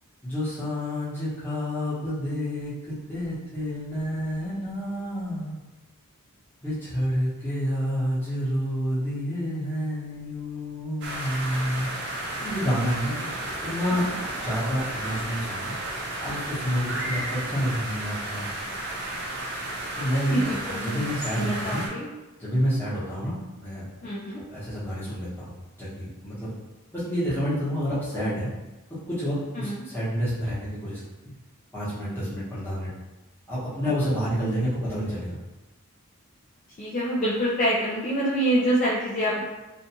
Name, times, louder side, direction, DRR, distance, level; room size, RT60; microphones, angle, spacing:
voice 1, 0.2-5.6 6.6-11.9 12.4-13.3 13.6-14.0 14.4-15.7 16.2-18.4 20.0-21.8 22.4-23.8 24.5-25.5 25.8-26.5 26.9-28.5 29.1-31.3 31.7-32.9 33.5-35.4, equal, 10° left, -11 dB, 0.9 m, -29 dB
sound 1, 11.0-21.9, right 1 dB, 50° right, 0.5 m, -33 dB
sound 2, 11.5-20.1, right 1 dB, 20° right, 0.8 m, -44 dB
voice 2, 20.3-21.0 21.3-22.1 24.0-24.4 29.6-29.8 36.8-39.4, right 1 dB, 35° left, -7 dB, 0.3 m, -26 dB
2.6 x 2.2 x 2.7 m, 1.1 s
head